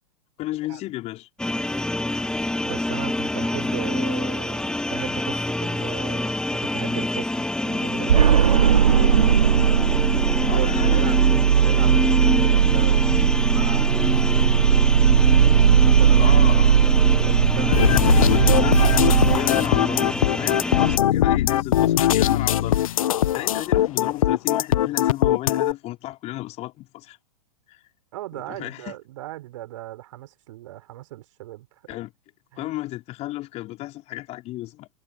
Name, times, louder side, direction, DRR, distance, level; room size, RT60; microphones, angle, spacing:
voice 1, 0.4-1.3 10.4-11.2 16.2-16.7 17.6-18.9 19.3-20.1 20.4-22.8 23.3-27.2 27.7-27.8 28.5-29.0 31.9-32.1 32.6-34.9, left 17 dB, 35° left, 4.9 m, -33 dB
sound 1, 1.4-21.0, left 1 dB, 5° left, 1.6 m, -26 dB
voice 2, 2.6-9.2 10.4-11.2 11.5-14.2 15.8-16.6 17.1-18.7 19.2-19.5 28.1-31.7 31.9-32.0 32.5-32.7, right 15 dB, 55° right, 5.6 m, -37 dB
sound 2, 8.1-19.4, right 8 dB, 70° right, 1.3 m, -18 dB
sound 3, 17.7-25.7, left 12 dB, 60° left, 1.0 m, -20 dB
figure-of-eight pair, 105°, 20 cm